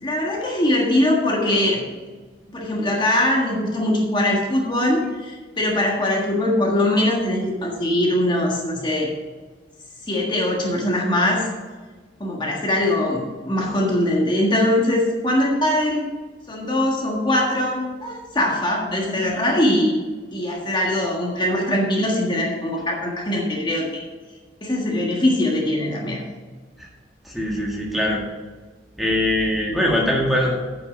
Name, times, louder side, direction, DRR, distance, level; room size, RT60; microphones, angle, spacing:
voice 1, 0.0-1.8 2.5-9.1 10.1-11.5 12.2-16.0 16.5-20.0 20.3-24.0 24.6-26.3, left 1 dB, 25° left, -1 dB, 1.6 m, -21 dB
voice 2, 27.2-28.2 29.0-30.6, left 1 dB, ahead, -3 dB, 1.7 m, -22 dB
9.1 x 5.9 x 6.0 m, 1.4 s
head